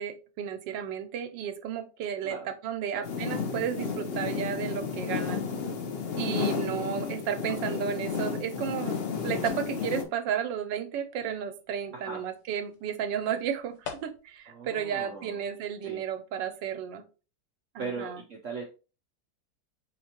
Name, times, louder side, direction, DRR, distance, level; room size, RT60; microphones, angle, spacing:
voice 1, 0.0-5.4 6.2-13.7 14.0-17.0 17.7-18.2, right 8 dB, 85° right, 8 dB, 1.3 m, -33 dB
sound 1, 3.0-10.0, left 5 dB, 80° left, 0.5 m, -32 dB
voice 2, 6.7-7.1 7.7-7.9 11.9-12.3 14.5-15.5 15.8-16.0 17.8-18.6, right 4 dB, 65° right, 1 dB, 0.8 m, -39 dB
sound 2, 8.0-14.5, left 6 dB, 60° left, 1.1 m, -49 dB
5.0 x 3.2 x 2.8 m, 0.33 s
omnidirectional pair, 1.9 m